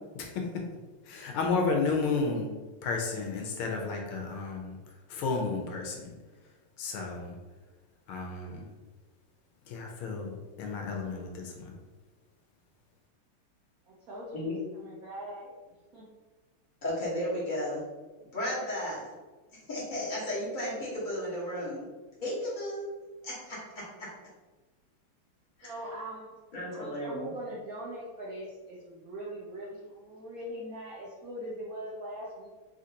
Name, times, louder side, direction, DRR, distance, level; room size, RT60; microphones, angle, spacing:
voice 1, 1.0-2.5 2.8-4.8 5.1-6.1 6.8-7.4 8.1-8.7 9.7-11.8, left 4 dB, 85° left, 1 dB, 1.5 m, -32 dB
voice 2, 13.9-15.5 15.9-16.1 25.6-26.3 26.7-32.5, equal, 80° right, -5 dB, 0.8 m, -41 dB
voice 3, 16.8-17.8 18.2-19.1 19.7-21.8 22.2-22.9 23.2-24.1 25.6-25.7 26.5-27.3, left 1 dB, 35° left, -8 dB, 0.8 m, -34 dB
3.9 x 2.5 x 2.7 m, 1.3 s
omnidirectional pair, 2.4 m